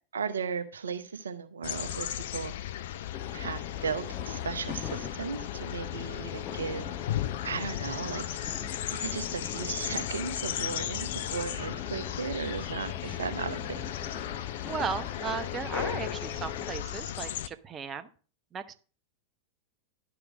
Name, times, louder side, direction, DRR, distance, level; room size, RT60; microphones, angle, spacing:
voice 1, 0.1-2.5 3.3-6.9 7.4-8.3 8.9-13.9, right 6 dB, 70° right, 10 dB, 0.8 m, -36 dB
sound 1, 1.6-17.5, left 12 dB, 55° left, 0.6 m, -36 dB
sound 2, 3.1-16.8, left 9 dB, 35° left, 1.2 m, -41 dB
voice 2, 14.6-18.1 18.5-18.7, right 6 dB, 25° right, 9 dB, 0.8 m, -36 dB
11.0 x 4.8 x 6.2 m, 0.38 s
figure-of-eight pair, 90°, 0 cm